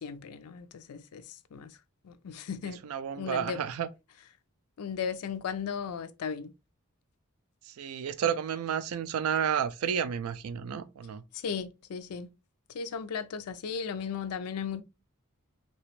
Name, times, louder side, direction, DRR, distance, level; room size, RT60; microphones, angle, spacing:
voice 1, 0.0-1.8 2.0-2.8 3.2-3.6 4.8-6.5 11.3-12.3 12.7-14.8, left 6 dB, 85° left, 0.4 m, -36 dB
voice 2, 2.8-3.9 7.6-11.2, right 8 dB, 75° right, 0.4 m, -31 dB
3.3 x 2.9 x 3.1 m
head